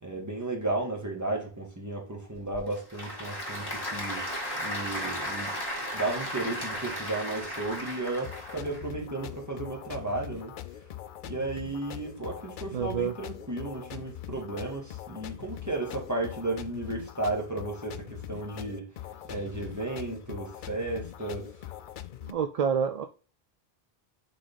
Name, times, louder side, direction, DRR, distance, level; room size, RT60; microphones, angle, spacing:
voice 1, 0.0-4.3 4.6-5.5 5.9-10.5 11.2-18.9 19.2-21.6, right 2 dB, 15° right, 1.9 m, -34 dB
Applause / Crowd, 2.3-8.8, equal, 20° left, 2.2 m, -35 dB
sound 1, 8.2-22.3, left 11 dB, 60° left, 0.6 m, -42 dB
voice 2, 12.7-13.1 22.3-23.0, right 7 dB, 50° right, 0.5 m, -28 dB
6.2 x 4.2 x 4.0 m
omnidirectional pair, 1.0 m